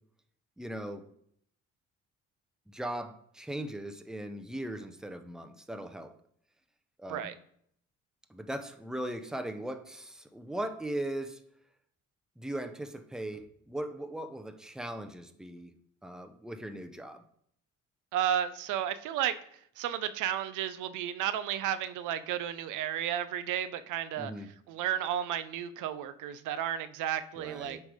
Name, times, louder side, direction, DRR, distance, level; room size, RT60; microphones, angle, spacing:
voice 1, 0.6-1.1 2.7-6.1 7.0-7.3 8.3-11.4 12.4-15.7 16.0-17.2 24.2-24.5 27.4-27.8, right 1 dB, ahead, 8 dB, 0.7 m, -39 dB
voice 2, 18.1-19.4 19.8-24.3 24.7-27.8, right 10 dB, 85° right, 12 dB, 0.5 m, -32 dB
9.4 x 3.4 x 4.8 m, 0.68 s
cardioid pair, 90°, 30 cm